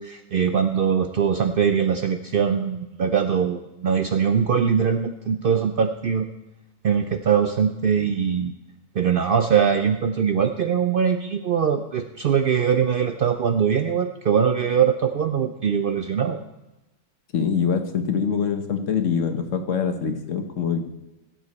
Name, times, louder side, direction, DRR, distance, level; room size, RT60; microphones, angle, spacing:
voice 1, 0.0-6.3 6.8-8.5 8.9-16.4, right 7 dB, 60° right, 7 dB, 0.6 m, -22 dB
voice 2, 17.3-20.8, left 6 dB, 65° left, 7 dB, 1.3 m, -24 dB
16.5 x 7.3 x 4.2 m, 0.97 s
omnidirectional pair, 1.4 m